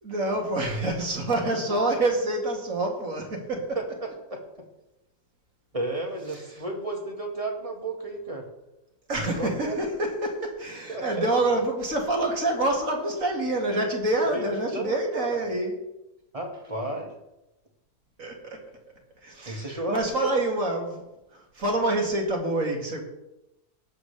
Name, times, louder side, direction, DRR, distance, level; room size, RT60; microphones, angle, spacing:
voice 1, 0.0-3.8 6.3-6.6 9.1-15.8 18.2-18.6 19.2-21.0 21.3-23.0, right 2 dB, 55° right, 1 dB, 2.5 m, -27 dB
voice 2, 5.7-8.4 9.3-9.9 10.9-11.3 14.3-14.4 14.7-15.0 16.3-17.1 19.4-20.0 20.4-20.5, right 1 dB, 20° right, 1 dB, 1.8 m, -32 dB
19.0 x 7.8 x 3.3 m, 0.94 s
omnidirectional pair, 1.7 m